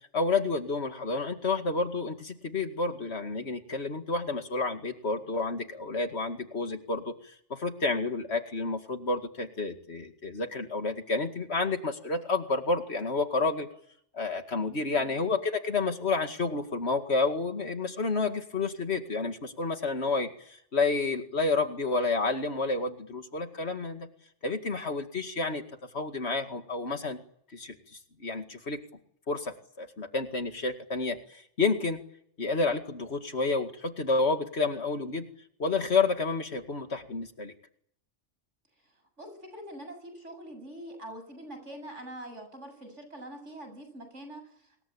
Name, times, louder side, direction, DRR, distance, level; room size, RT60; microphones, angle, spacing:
voice 1, 0.1-7.1 7.5-13.7 14.1-24.1 24.4-25.6 25.9-27.2 27.5-27.8 28.2-28.8 29.3-32.0 32.4-35.2 35.6-37.5, left 3 dB, 60° left, 6 dB, 2.4 m, -30 dB
voice 2, 14.8-15.2 39.2-44.8, right 1 dB, 75° right, 7 dB, 8.1 m, -44 dB
26.5 x 22.0 x 8.7 m, 0.69 s
omnidirectional pair, 1.3 m